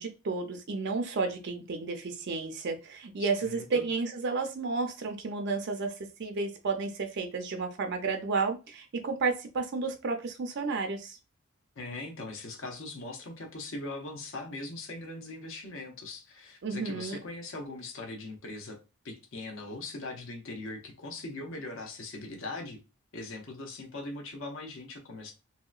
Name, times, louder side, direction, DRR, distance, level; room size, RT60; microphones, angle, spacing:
voice 1, 0.0-11.2 16.6-17.2, right 4 dB, 50° right, 0.5 m, -32 dB
voice 2, 3.2-3.8 11.8-18.8 19.0-22.8 23.1-25.3, left 2 dB, 60° left, 0.7 m, -40 dB
3.0 x 2.8 x 2.3 m
head